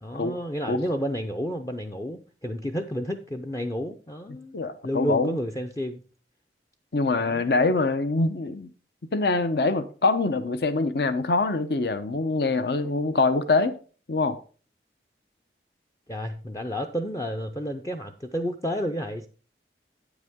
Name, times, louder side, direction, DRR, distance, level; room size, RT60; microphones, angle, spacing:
voice 1, 0.0-4.6 4.8-6.0 16.1-19.3, equal, 20° left, 0.5 m, -31 dB
voice 2, 4.5-5.4 6.9-8.7 9.1-13.8 14.1-14.4, left 3 dB, 65° left, 0.7 m, -24 dB
9.2 x 8.0 x 3.6 m
head